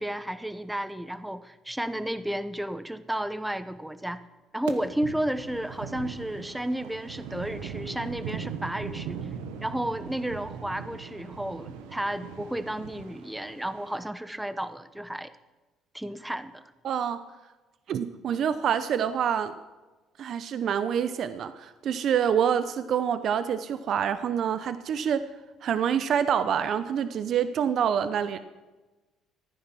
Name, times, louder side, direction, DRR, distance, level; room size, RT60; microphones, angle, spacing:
voice 1, 0.0-4.2 4.5-9.2 9.6-15.3 15.9-16.6, right 1 dB, 5° right, 12 dB, 0.9 m, -32 dB
sound 1, 4.7-14.0, right 7 dB, 85° right, 1.2 m, -40 dB
voice 2, 16.8-17.2 17.9-19.5 20.2-25.2 25.6-28.4, right 8 dB, 60° right, 12 dB, 0.8 m, -26 dB
14.5 x 9.6 x 6.1 m, 1.2 s
supercardioid pair, 70°, 0 cm